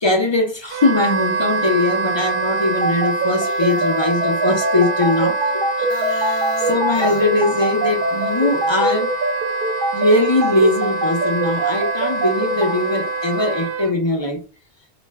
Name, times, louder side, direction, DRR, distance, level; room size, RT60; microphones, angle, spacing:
voice 1, 0.0-5.4 5.8-9.1 9.9-14.4, left 2 dB, 40° left, 0.4 m, -20 dB
Wind instrument woodwind instrument, 0.7-13.9, right 3 dB, 90° right, 0.9 m, -25 dB
sound 1, 2.8-12.7, right 3 dB, 60° right, 0.6 m, -23 dB
sound 2, 3.3-8.8, left 3 dB, 90° left, 0.8 m, -32 dB
2.4 x 2.1 x 3.2 m
omnidirectional pair, 1.1 m